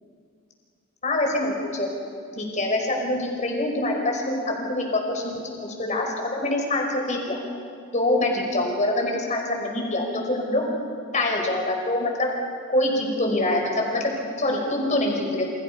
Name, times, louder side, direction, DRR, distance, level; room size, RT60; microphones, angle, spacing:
voice 1, 1.0-1.9 2.4-4.4 4.7-5.4 5.8-7.4 7.9-10.6 11.1-12.3 12.7-15.4, left 1 dB, 35° left, 1 dB, 5.5 m, -25 dB
30.0 x 28.5 x 5.6 m, 2.3 s
head